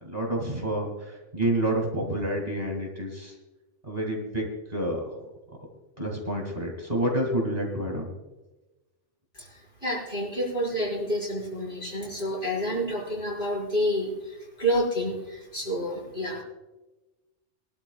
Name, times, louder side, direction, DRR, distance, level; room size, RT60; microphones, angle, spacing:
voice 1, 0.0-3.3 3.8-5.0 6.0-8.1, right 1 dB, 35° right, 0 dB, 2.3 m, -29 dB
voice 2, 9.3-16.4, equal, 45° left, -5 dB, 5.5 m, -29 dB
22.0 x 12.5 x 2.3 m, 1.1 s
omnidirectional pair, 1.2 m